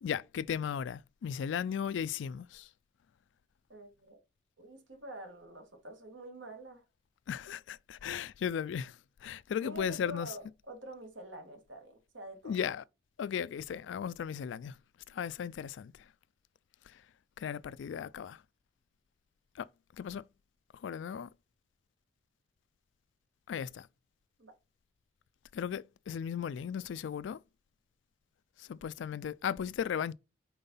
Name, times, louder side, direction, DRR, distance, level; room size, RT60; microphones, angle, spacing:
voice 1, 0.0-2.7 7.3-10.3 12.4-12.8 13.2-14.8 15.1-15.9 16.9-17.0 17.4-18.4 19.6-19.7 20.0-20.2 20.7-21.3 23.5-23.9 25.5-27.4 28.6-30.1, left 8 dB, 80° left, 0.3 m, -36 dB
voice 2, 3.7-4.2 4.6-6.8 9.6-12.5 24.4-24.5, right 1 dB, 85° right, 2.1 m, -47 dB
5.5 x 4.4 x 5.4 m
head